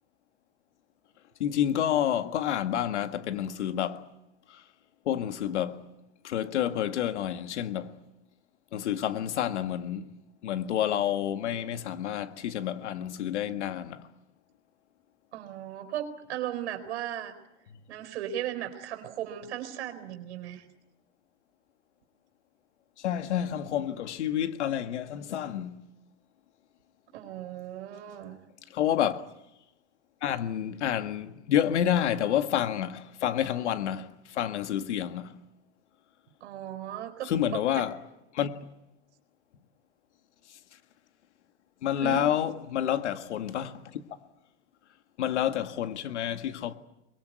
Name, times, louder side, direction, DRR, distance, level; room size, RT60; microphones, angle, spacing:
voice 1, 1.4-4.1 4.5-4.6 5.1-5.9 6.2-8.0 8.7-10.1 10.4-14.1 23.0-25.8 28.7-29.3 30.2-35.4 37.2-38.0 38.3-38.6 40.5-40.6 41.8-44.2 45.2-46.7, left 10 dB, 80° left, 1.9 m, -29 dB
voice 2, 15.3-17.3 17.9-20.7 27.1-28.4 36.4-37.8 42.0-42.2, right 11 dB, 70° right, 4.3 m, -36 dB
24.0 x 21.5 x 9.4 m
hypercardioid pair, 125°, 34 cm